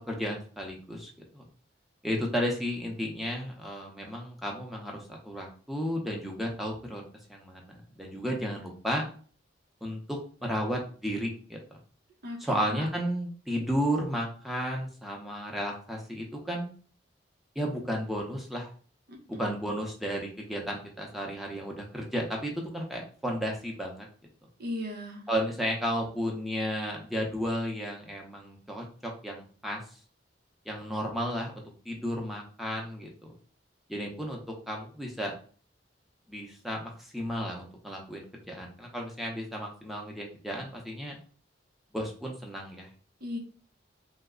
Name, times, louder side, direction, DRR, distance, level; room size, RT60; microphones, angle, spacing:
voice 1, 0.0-1.5 2.0-7.0 7.3-9.0 9.8-11.8 12.4-16.7 17.5-18.7 19.4-24.1 25.3-29.8 30.7-33.3 33.9-34.4 34.7-35.3 36.3-41.2 41.9-42.9, equal, ahead, -1 dB, 0.7 m, -33 dB
voice 2, 12.2-12.8 19.1-19.6 24.6-25.2 43.2-43.4, left 1 dB, 55° right, 2 dB, 0.8 m, -37 dB
3.2 x 2.1 x 3.7 m, 0.41 s
head